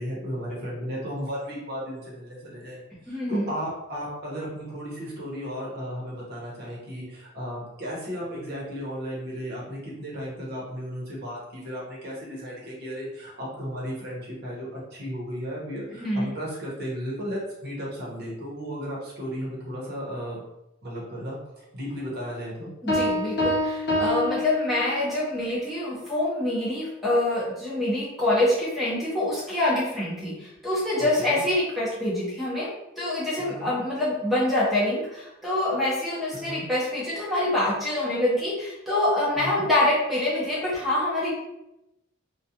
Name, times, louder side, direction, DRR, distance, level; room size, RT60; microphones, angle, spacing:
voice 1, 0.0-2.8 3.1-20.4 20.8-22.7 31.0-31.4 33.4-33.7 36.3-36.7 39.4-39.7, equal, 50° right, -5 dB, 0.9 m, -35 dB
voice 2, 3.1-3.5 16.0-16.3 22.8-32.7 33.0-41.3, left 1 dB, ahead, -8 dB, 0.7 m, -25 dB
sound 1, 22.9-25.3, left 1 dB, 55° left, 0.8 m, -26 dB
2.3 x 2.2 x 2.7 m, 0.88 s
head